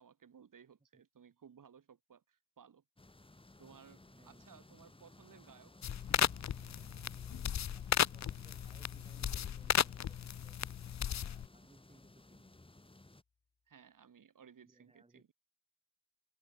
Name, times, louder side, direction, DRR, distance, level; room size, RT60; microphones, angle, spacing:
voice 1, 0.0-2.8 3.6-6.0 13.7-15.3, right 7 dB, 80° right, 5.8 m, -60 dB
sound 1, 3.0-13.2, left 2 dB, 15° left, 4.8 m, -59 dB
voice 2, 4.0-4.5 7.7-7.8 8.1-10.6 11.1-12.5 14.6-15.2, right 2 dB, 20° right, 6.9 m, -66 dB
sound 2, 5.8-11.5, left 9 dB, 60° left, 0.7 m, -35 dB
sound 3, 11.9-12.1, left 5 dB, 40° left, 7.0 m, -56 dB
open air
wide cardioid pair, 165°, 32 cm